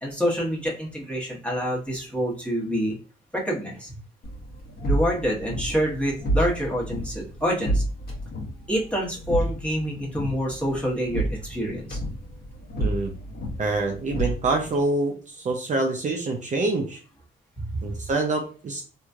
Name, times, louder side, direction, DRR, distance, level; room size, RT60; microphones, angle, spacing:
voice 1, 0.0-3.0 3.3-4.0 4.9-7.8 8.7-12.0 17.6-17.7, equal, 5° left, -4 dB, 1.2 m, -27 dB
sound 1, 4.2-14.8, right 1 dB, 50° left, 1.1 m, -30 dB
voice 2, 12.8-13.1 13.6-17.0 17.8-18.8, right 2 dB, 40° right, 1 dB, 0.6 m, -26 dB
2.9 x 2.7 x 2.4 m, 0.38 s
cardioid pair, 90°, 20 cm